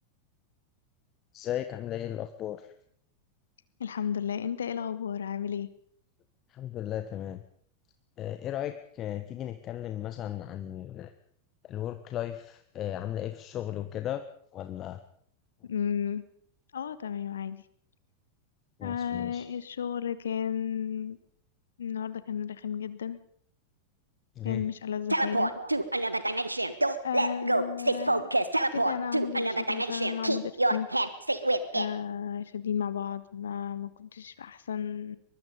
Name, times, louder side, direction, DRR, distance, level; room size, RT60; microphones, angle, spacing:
voice 1, 1.3-2.7 6.5-7.4 8.2-11.1 11.6-14.2 14.5-15.0 18.8-19.5 24.3-24.6, left 11 dB, 30° left, 9 dB, 1.4 m, -36 dB
voice 2, 3.8-5.7 15.7-16.2 16.7-17.6 18.8-21.2 21.8-23.2 24.4-25.5 27.0-28.3 28.7-30.9 31.7-35.2, left 8 dB, 65° left, 15 dB, 1.3 m, -33 dB
sound 1, 25.1-31.9, right 1 dB, 85° right, 1.5 m, -27 dB
23.5 x 22.0 x 5.3 m, 0.63 s
figure-of-eight pair, 90°, 0 cm